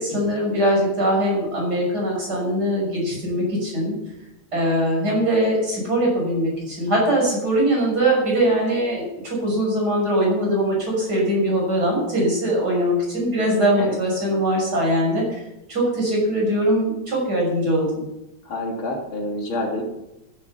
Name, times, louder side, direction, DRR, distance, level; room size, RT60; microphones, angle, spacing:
voice 1, 0.0-4.0 4.5-15.4 15.7-18.0, right 1 dB, 50° right, -3 dB, 7.0 m, -21 dB
voice 2, 18.4-19.8, left 1 dB, 75° left, 1 dB, 3.3 m, -28 dB
15.0 x 10.5 x 6.0 m, 0.92 s
omnidirectional pair, 2.3 m